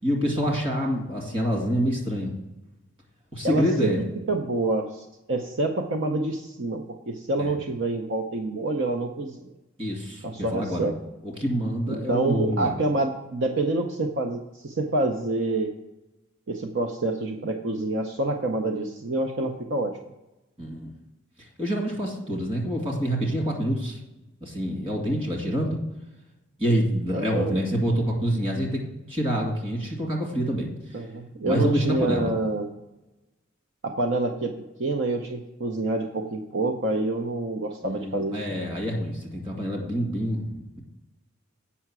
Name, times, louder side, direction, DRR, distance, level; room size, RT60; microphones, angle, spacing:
voice 1, 0.0-2.3 3.3-4.0 7.4-7.6 9.8-10.9 11.2-12.7 20.6-20.9 21.6-24.0 24.4-25.8 26.6-31.0 31.4-32.3 37.8-40.8, equal, 25° right, 0 dB, 2.2 m, -27 dB
voice 2, 3.4-3.9 4.3-9.5 10.2-10.9 11.9-15.7 16.5-20.0 27.1-27.6 30.9-32.7 33.8-34.5 34.8-38.5, right 2 dB, 60° right, 4 dB, 0.7 m, -27 dB
8.4 x 5.7 x 6.0 m, 0.99 s
head